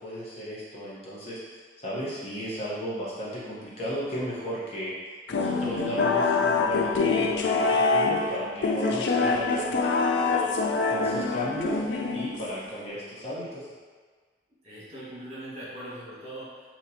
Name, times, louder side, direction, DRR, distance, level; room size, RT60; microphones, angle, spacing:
voice 1, 0.0-4.9 5.3-10.6 10.9-11.8 12.1-13.7, equal, 35° left, -8 dB, 0.9 m, -35 dB
sound 1, 5.3-12.7, left 4 dB, 85° left, 0.4 m, -25 dB
voice 2, 14.6-16.6, right 1 dB, 40° right, -9 dB, 1.4 m, -40 dB
4.3 x 3.0 x 2.7 m, 1.5 s
head